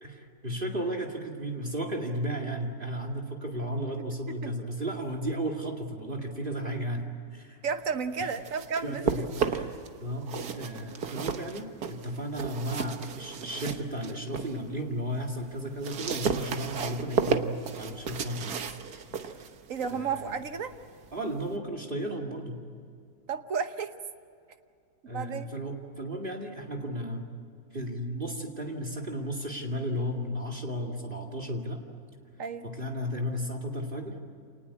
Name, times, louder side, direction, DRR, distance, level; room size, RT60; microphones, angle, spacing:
voice 1, 0.0-7.6 8.2-8.3 8.8-17.5 17.8-18.8 19.3-19.5 19.9-20.3 21.1-22.6 25.1-27.3 27.7-31.8 32.6-34.2, equal, 35° right, 4 dB, 2.5 m, -34 dB
voice 2, 7.6-9.3 19.7-20.7 23.3-23.9 25.1-25.5 32.4-32.7, right 6 dB, 60° right, 9 dB, 1.4 m, -32 dB
sound 1, 8.0-9.9 10.2-14.6 15.0-21.6, right 6 dB, 85° right, 1.7 m, -33 dB
27.5 x 19.5 x 8.4 m, 2.4 s
omnidirectional pair, 1.6 m